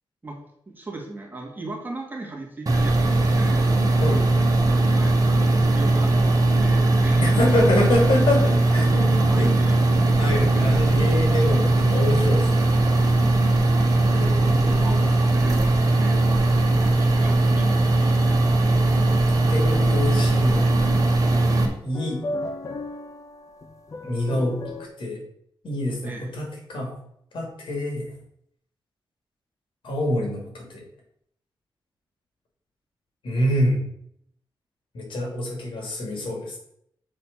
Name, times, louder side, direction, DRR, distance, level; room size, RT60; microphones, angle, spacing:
voice 1, 0.2-3.6 4.9-7.6 9.2-10.7 14.4-16.2 16.9-18.1 26.0-26.3, right 2 dB, 20° right, 0 dB, 2.0 m, -37 dB
sound 1, 2.7-21.7, right 2 dB, 45° right, 1.6 m, -19 dB
voice 2, 7.2-9.5 10.2-12.7 14.1-15.1 19.3-20.8 21.8-22.2 24.0-24.6 25.0-25.2 25.6-26.9 27.3-28.1 29.8-30.8 33.2-33.8 34.9-36.6, left 1 dB, 75° left, 0 dB, 3.2 m, -26 dB
sound 2, 8.8-13.3, right 6 dB, 75° right, 0.7 m, -37 dB
sound 3, 19.2-24.9, left 2 dB, 40° left, 0.9 m, -37 dB
7.3 x 4.2 x 6.2 m, 0.70 s
wide cardioid pair, 115°, 9 cm